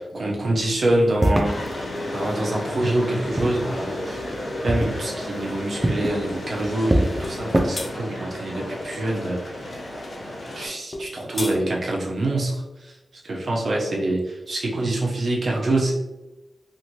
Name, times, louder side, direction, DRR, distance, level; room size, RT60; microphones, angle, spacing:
voice 1, 0.0-1.6 2.1-4.2 4.6-9.8 10.5-13.0 13.2-15.9, right 1 dB, 70° right, -2 dB, 0.8 m, -25 dB
sound 1, 0.6-2.5 3.1-4.4 4.7-7.7, right 1 dB, 25° right, 0.5 m, -25 dB
sound 2, 1.4-10.7, left 1 dB, 60° left, 0.8 m, -33 dB
sound 3, 7.2-7.4 7.7-7.9 10.9-11.6, left 2 dB, 40° left, 0.4 m, -31 dB
2.6 x 2.5 x 2.9 m, 1.0 s
cardioid pair, 55°, 0 cm